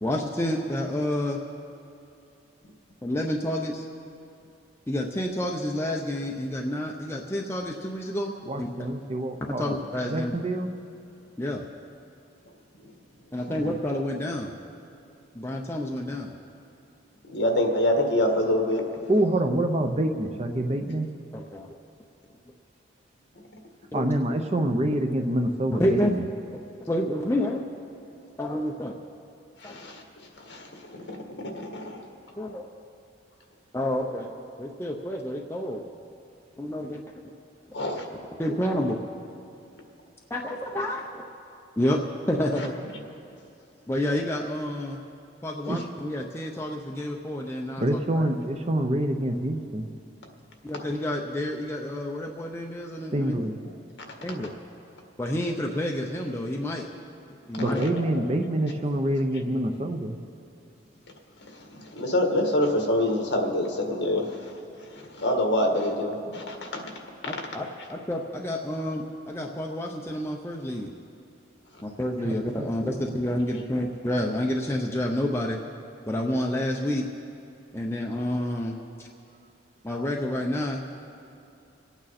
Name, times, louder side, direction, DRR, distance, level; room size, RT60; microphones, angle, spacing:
voice 1, 0.0-1.4 3.0-3.9 4.9-8.3 8.6-8.9 9.6-10.4 11.4-11.6 13.3-14.5 15.3-16.3 21.3-21.7 23.9-24.1 25.7-26.1 26.9-27.6 28.4-28.9 29.6-29.8 32.4-32.7 33.7-34.3 34.6-35.8 36.6-37.0 38.4-39.0 40.3-41.2 41.8-42.0 42.3-42.8 43.9-45.0 45.4-48.3 50.6-53.5 54.2-54.5 55.2-56.9 57.5-57.8 67.3-70.9 71.8-75.6 76.1-77.1 77.7-79.1 79.8-80.8, left 1 dB, 15° left, 0 dB, 0.6 m, -29 dB
voice 2, 8.5-9.8 10.1-10.7 13.5-13.7 19.1-21.1 23.9-26.3 45.7-45.8 47.8-49.9 53.1-53.6 57.6-60.2 72.2-73.0, right 1 dB, 30° right, 5 dB, 0.6 m, -26 dB
voice 3, 17.2-18.9 29.6-32.0 37.7-38.0 42.6-42.7 45.7-45.8 57.6-58.3 59.3-59.4 61.4-66.8 67.2-67.4, left 1 dB, 60° left, 2 dB, 1.7 m, -27 dB
26.5 x 9.0 x 4.2 m, 2.7 s
head